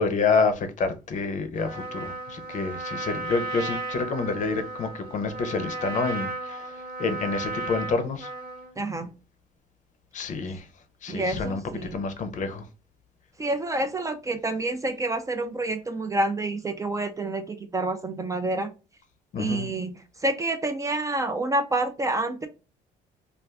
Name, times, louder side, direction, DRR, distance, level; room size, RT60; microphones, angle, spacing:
voice 1, 0.0-6.7 7.0-8.3 10.1-10.7 11.0-12.6 19.3-19.7, left 4 dB, 45° left, 0.6 m, -28 dB
Trumpet, 1.6-8.7, right 2 dB, 75° right, 1.0 m, -35 dB
voice 2, 8.8-9.1 11.1-12.0 13.4-18.7 19.4-19.9 20.2-22.5, right 2 dB, 20° right, 0.3 m, -28 dB
2.4 x 2.4 x 3.3 m
cardioid pair, 110°, 17 cm